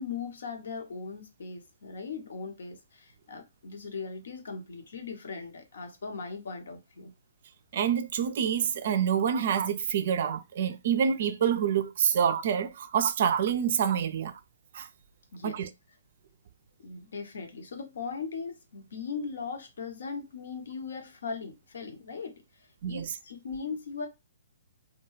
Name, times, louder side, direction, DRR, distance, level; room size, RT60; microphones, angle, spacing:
voice 1, 0.0-7.1 15.3-15.5 16.8-24.1, left 5 dB, 65° left, 0.8 m, -39 dB
voice 2, 7.7-14.3 14.7-14.9 15.4-15.7 22.8-23.1, right 8 dB, 55° right, 0.4 m, -27 dB
2.2 x 2.2 x 3.1 m
figure-of-eight pair, 125°, 0 cm